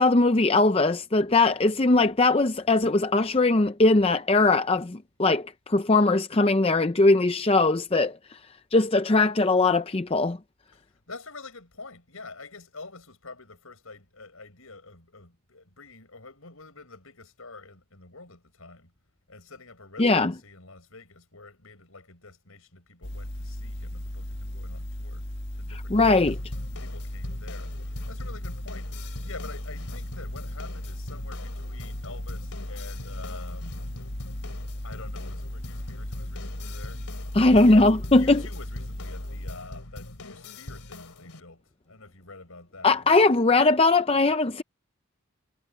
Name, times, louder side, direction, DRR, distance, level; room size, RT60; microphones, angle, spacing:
voice 1, 0.0-8.4 8.7-10.4 20.0-20.3 25.9-26.4 37.3-38.4 42.8-44.6, left 2 dB, 25° left, 0.5 m, -20 dB
voice 2, 10.7-18.9 19.3-25.3 25.5-26.3 26.8-28.9 29.2-33.7 34.8-37.0 37.5-43.2, left 3 dB, 70° left, 5.8 m, -47 dB
sound 1, 23.0-39.6, left 1 dB, 50° left, 1.8 m, -36 dB
sound 2, 26.0-41.4, left 2 dB, 90° left, 2.7 m, -42 dB
head